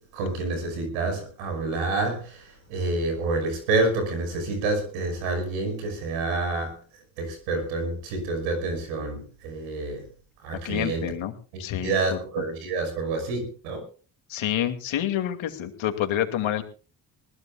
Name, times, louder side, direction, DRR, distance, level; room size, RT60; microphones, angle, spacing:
voice 1, 0.1-6.7 7.2-10.0 10.4-11.0 11.8-13.8, right 3 dB, 90° right, 6 dB, 5.7 m, -28 dB
voice 2, 10.6-11.3 11.6-12.2 14.3-16.6, left 11 dB, 70° left, 7 dB, 2.6 m, -28 dB
21.5 x 19.5 x 2.4 m, 0.37 s
hypercardioid pair, 45°, 49 cm